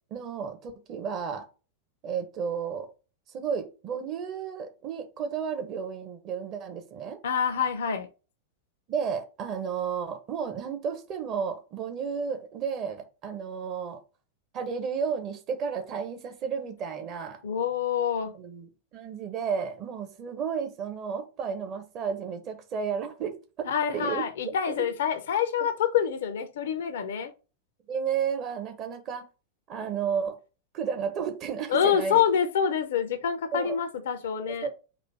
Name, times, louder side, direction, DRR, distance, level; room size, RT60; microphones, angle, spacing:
voice 1, 0.1-1.5 2.0-2.9 3.3-7.2 8.9-14.0 14.5-17.4 18.3-24.9 27.9-29.3 29.7-30.4 30.7-32.2 33.5-33.8 34.5-34.7, right 6 dB, 35° right, 1.1 m, -32 dB
voice 2, 7.2-8.1 17.4-18.3 23.7-27.3 31.7-34.7, left 8 dB, 60° left, 0.7 m, -26 dB
4.2 x 2.6 x 4.4 m
figure-of-eight pair, 90°, 0 cm